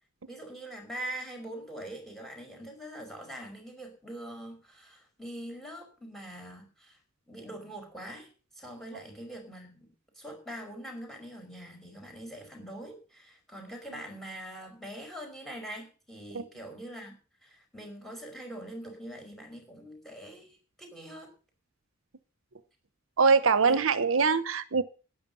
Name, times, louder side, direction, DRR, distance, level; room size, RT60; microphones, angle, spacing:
voice 1, 0.3-7.0 7.3-8.3 8.5-9.9 10.1-21.3 23.6-23.8, right 1 dB, ahead, 5.1 m, -43 dB
voice 2, 23.2-24.8, right 5 dB, 70° right, 0.8 m, -23 dB
12.5 x 9.8 x 6.9 m
head